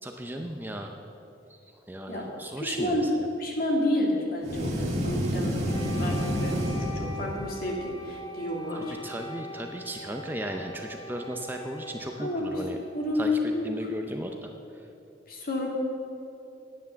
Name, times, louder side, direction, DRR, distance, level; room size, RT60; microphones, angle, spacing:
voice 1, 0.0-0.9 1.9-3.0 8.7-12.8 13.2-13.3 13.6-14.5, right 1 dB, 10° right, 3 dB, 0.5 m, -36 dB
voice 2, 2.6-3.1 3.4-9.0 12.2-12.7 12.9-13.9 15.3-15.7, left 1 dB, 50° left, -1 dB, 2.2 m, -30 dB
sound 1, 4.4-7.6, equal, 35° right, 1.6 m, -29 dB
Wind instrument woodwind instrument, 5.6-13.7, equal, 25° left, 0.9 m, -43 dB
10.0 x 9.4 x 6.8 m, 2.7 s
head